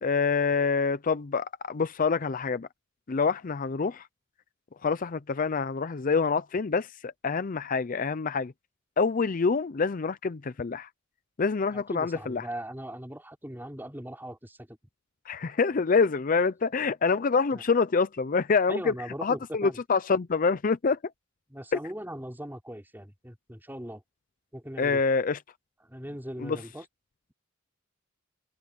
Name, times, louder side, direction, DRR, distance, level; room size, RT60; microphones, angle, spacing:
voice 1, 0.0-2.7 3.1-4.1 4.8-8.5 9.0-10.9 11.4-12.5 15.3-18.9 19.2-21.0 21.7-21.8 24.8-25.4 26.4-26.6, left 4 dB, 40° left, 0.5 m, -26 dB
voice 2, 11.7-14.8 17.1-17.2 17.5-17.6 18.7-19.8 21.5-24.0 24.5-25.0 25.8-26.9, right 1 dB, 10° right, 4.1 m, -39 dB
head